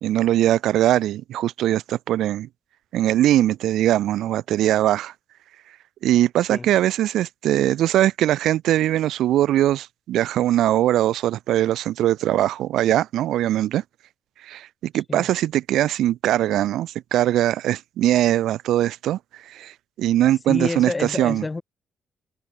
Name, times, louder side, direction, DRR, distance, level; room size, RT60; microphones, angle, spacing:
voice 1, 0.0-2.5 2.9-5.1 6.0-13.8 14.4-19.2 19.5-19.7 20.0-21.4, right 13 dB, 80° right, 2.6 m, -21 dB
voice 2, 14.9-15.3 20.5-21.6, left 3 dB, 20° left, 2.1 m, -28 dB
cardioid pair, 90°, 0 cm